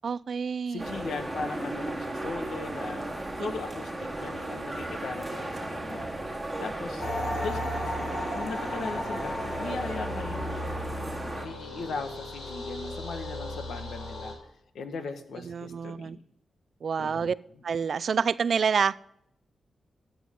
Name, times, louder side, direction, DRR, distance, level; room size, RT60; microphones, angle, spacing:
voice 1, 0.0-0.9 3.4-3.5 15.4-16.2 16.8-17.4 17.6-19.0, right 6 dB, 50° right, 0.3 m, -28 dB
voice 2, 0.7-3.0 3.4-6.1 6.6-7.6 8.0-10.9 11.4-14.4 14.7-16.2 17.0-17.3, left 4 dB, 80° left, 1.4 m, -38 dB
sound 1, 0.8-11.5, right 1 dB, 5° right, 2.2 m, -35 dB
sound 2, 7.0-14.3, left 1 dB, 65° left, 3.6 m, -35 dB
13.5 x 9.1 x 3.7 m
wide cardioid pair, 175°, 0 cm